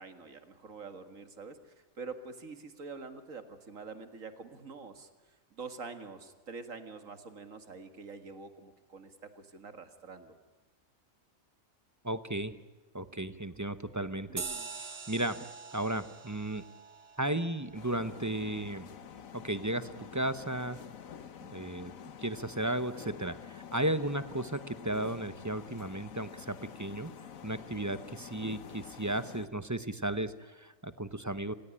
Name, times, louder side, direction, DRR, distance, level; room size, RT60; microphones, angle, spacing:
voice 1, 0.0-5.1 5.5-10.3 14.3-14.7, right 4 dB, 70° right, 9 dB, 2.3 m, -46 dB
voice 2, 12.0-12.5 12.9-14.4 15.1-15.5 15.7-16.6 17.2-18.9 19.3-20.8 21.4-21.9 22.2-27.1 27.4-31.5, right 1 dB, 15° right, 13 dB, 0.8 m, -34 dB
sound 1, 14.4-19.3, right 5 dB, 45° right, 1.6 m, -45 dB
sound 2, 17.7-29.5, left 8 dB, 75° left, 1.5 m, -48 dB
27.5 x 17.0 x 10.0 m, 1.2 s
omnidirectional pair, 1.4 m